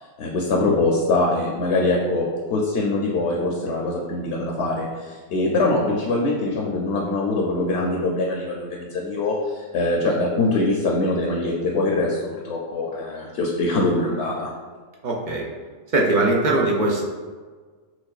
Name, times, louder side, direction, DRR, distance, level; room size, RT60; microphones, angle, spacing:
voice 1, 0.2-14.5, left 2 dB, 65° left, -1 dB, 0.8 m, -23 dB
voice 2, 15.0-15.5 15.9-17.1, right 2 dB, 60° right, -2 dB, 0.5 m, -20 dB
5.9 x 2.2 x 2.3 m, 1.5 s
omnidirectional pair, 1.3 m